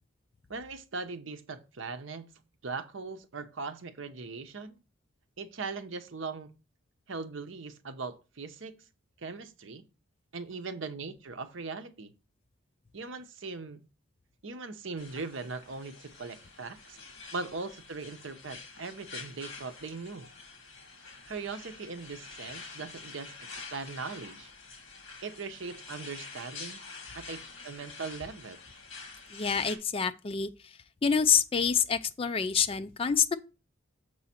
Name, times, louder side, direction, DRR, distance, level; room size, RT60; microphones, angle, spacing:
voice 1, 0.5-2.3 2.6-4.8 5.4-6.5 7.1-8.8 9.2-9.8 10.3-12.1 12.9-13.8 14.4-17.0 17.3-20.3 21.3-24.5 25.2-26.8 27.1-27.4 27.6-28.6, right 4 dB, 70° right, 0.7 m, -40 dB
sound 1, 15.0-29.8, left 4 dB, 70° left, 1.5 m, -47 dB
voice 2, 29.3-30.7 31.0-33.4, left 7 dB, 25° left, 0.3 m, -27 dB
6.9 x 4.7 x 4.2 m
head